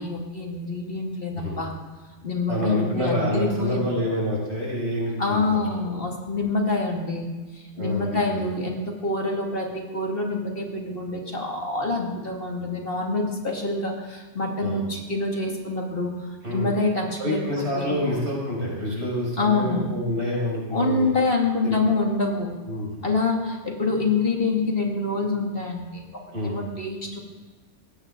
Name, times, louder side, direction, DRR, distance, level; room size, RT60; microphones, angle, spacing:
voice 1, 0.0-1.7 2.2-3.8 5.2-16.1 16.5-17.4 17.8-18.0 19.4-19.9 20.7-22.5 23.0-27.2, left 3 dB, 50° left, 0 dB, 2.4 m, -26 dB
voice 2, 2.5-5.9 7.7-8.5 14.6-14.8 16.4-16.7 17.2-21.1 21.6-22.0 22.6-23.0 26.3-26.6, equal, 65° right, -4 dB, 6.2 m, -28 dB
19.0 x 16.0 x 3.8 m, 1.2 s
omnidirectional pair, 1.2 m